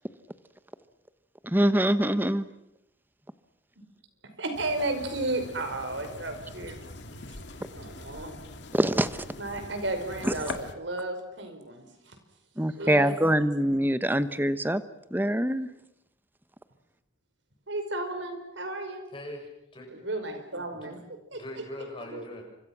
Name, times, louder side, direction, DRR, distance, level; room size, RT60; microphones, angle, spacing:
voice 1, 1.4-2.5 8.7-9.3 10.2-10.6 12.6-14.8 15.1-15.7, right 1 dB, 10° right, 12 dB, 1.0 m, -24 dB
voice 2, 4.4-6.8 7.7-8.3 9.4-12.2 12.8-13.1 17.7-19.0 19.9-21.6 22.1-22.2, right 2 dB, 75° right, 7 dB, 5.3 m, -33 dB
sound 1, 4.5-10.7, left 2 dB, 65° left, 2.2 m, -43 dB
voice 3, 19.1-19.9 20.8-20.9 21.3-22.4, left 1 dB, 25° left, 2 dB, 6.6 m, -41 dB
29.0 x 25.0 x 6.1 m, 0.83 s
head